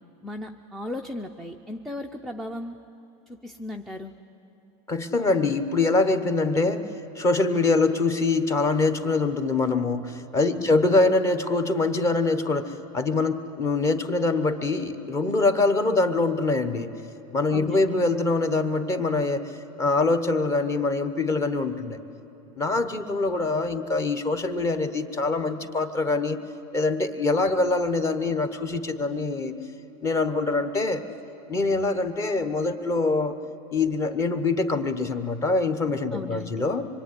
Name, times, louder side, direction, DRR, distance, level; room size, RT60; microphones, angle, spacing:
voice 1, 0.2-2.8 3.3-4.1 10.5-10.8 17.5-18.0 36.1-36.7, left 2 dB, ahead, 1 dB, 0.5 m, -36 dB
voice 2, 4.9-6.8 7.1-16.9 17.3-19.5 19.8-22.0 22.6-26.4 26.7-29.5 30.0-31.0 31.5-33.4 33.7-36.9, left 3 dB, 20° left, 9 dB, 1.1 m, -24 dB
25.5 x 22.5 x 9.8 m, 2.9 s
supercardioid pair, 170°, 15 cm